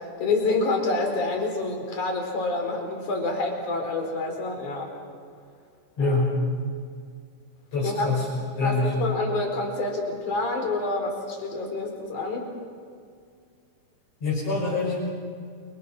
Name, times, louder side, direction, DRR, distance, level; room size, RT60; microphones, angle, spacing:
voice 1, 0.2-4.9 6.0-6.2 7.8-8.1 8.6-12.5, left 3 dB, 85° left, 2 dB, 5.8 m, -27 dB
voice 2, 6.0-6.4 7.7-8.3 8.6-8.9 14.2-15.0, left 3 dB, 55° left, -6 dB, 7.4 m, -25 dB
29.0 x 29.0 x 6.1 m, 2.2 s
omnidirectional pair, 3.4 m